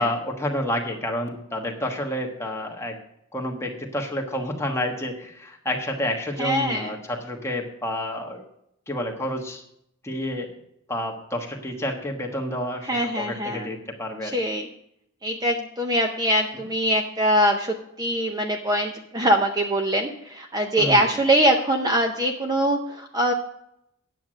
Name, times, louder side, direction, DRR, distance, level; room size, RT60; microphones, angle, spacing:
voice 1, 0.0-3.0 3.3-8.4 8.9-9.6 10.0-10.5 10.9-12.9 13.2-14.4 20.8-21.0, left 1 dB, 10° left, 1 dB, 1.3 m, -29 dB
voice 2, 6.4-6.9 12.9-13.7 14.2-14.7 15.2-23.3, equal, 15° right, 3 dB, 0.7 m, -23 dB
9.6 x 7.6 x 6.2 m, 0.77 s
head